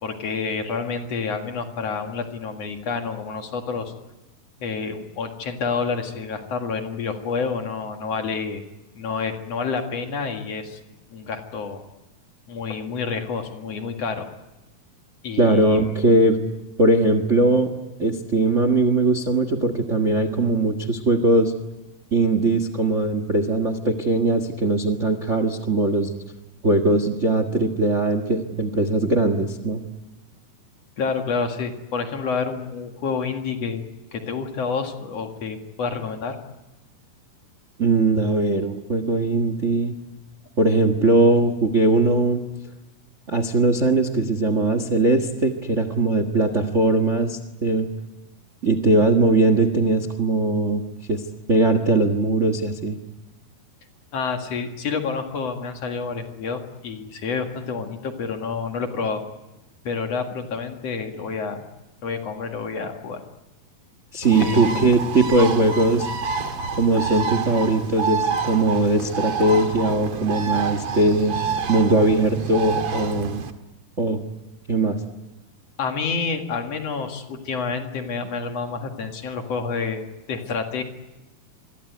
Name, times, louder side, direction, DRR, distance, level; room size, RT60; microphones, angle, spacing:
voice 1, 0.0-3.9 4.6-8.6 8.9-10.8 11.1-11.8 12.5-14.3 15.2-16.0 31.0-33.8 34.1-36.4 54.1-59.2 59.8-61.6 62.0-63.2 64.4-64.8 75.8-80.8, left 5 dB, 50° left, 5 dB, 2.6 m, -28 dB
voice 2, 15.4-16.4 16.8-17.7 18.0-21.5 22.1-26.1 26.6-29.8 37.8-39.9 40.6-42.4 43.3-47.9 48.6-50.8 51.1-51.2 51.5-53.0 64.1-66.1 66.7-71.3 71.7-73.4 74.0-74.2 74.7-75.0, right 2 dB, 85° right, 10 dB, 0.6 m, -20 dB
Bird, 64.2-73.5, right 5 dB, 50° right, 2.0 m, -28 dB
26.5 x 23.0 x 9.5 m, 1.0 s
omnidirectional pair, 4.2 m